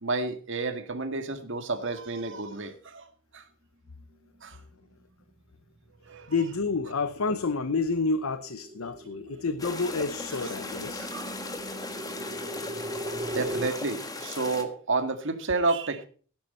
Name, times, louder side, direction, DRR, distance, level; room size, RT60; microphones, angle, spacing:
voice 1, 0.0-3.1 3.3-3.4 4.4-4.6 6.1-6.3 11.0-11.3 13.3-16.1, right 3 dB, 60° right, 2.0 m, -30 dB
sound 1, 4.0-4.4 4.8-13.7, right 1 dB, 30° right, 0.9 m, -40 dB
voice 2, 6.3-11.1, left 4 dB, 75° left, 0.8 m, -29 dB
sound 2, 9.6-14.6, left 3 dB, 20° left, 1.6 m, -38 dB
16.5 x 10.5 x 4.4 m
head